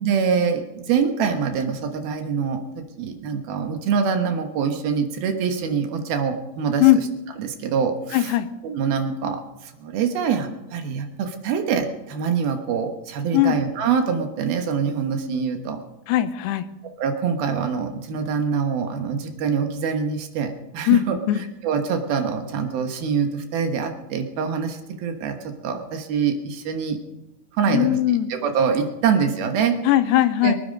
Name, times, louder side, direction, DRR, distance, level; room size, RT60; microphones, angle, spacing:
voice 1, 0.0-6.8 7.4-8.3 8.6-15.8 17.0-21.2 21.6-27.0 27.6-28.0 28.3-29.8 30.4-30.5, right 6 dB, 70° right, 5 dB, 3.0 m, -24 dB
voice 2, 8.1-8.5 13.3-13.6 16.1-16.7 20.9-21.4 27.6-28.3 29.8-30.5, left 14 dB, 85° left, 10 dB, 2.9 m, -19 dB
23.5 x 9.5 x 5.3 m, 0.98 s
omnidirectional pair, 4.7 m